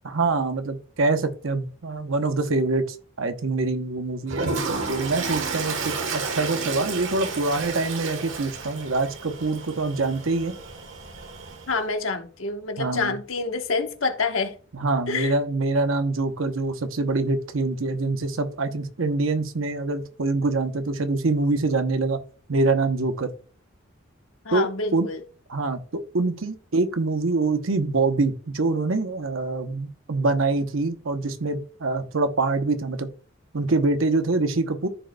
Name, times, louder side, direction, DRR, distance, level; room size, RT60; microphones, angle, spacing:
voice 1, 0.0-4.5 4.9-10.6 12.8-13.2 14.7-22.2 22.5-23.3 24.5-25.1 25.5-33.1 33.5-34.9, right 3 dB, 85° right, 0.9 m, -25 dB
Toilet flush, 4.3-11.8, right 4 dB, 70° right, 1.3 m, -31 dB
voice 2, 11.7-14.5 15.1-15.3 24.4-25.2, left 4 dB, 85° left, 1.2 m, -27 dB
14.5 x 5.1 x 2.3 m
head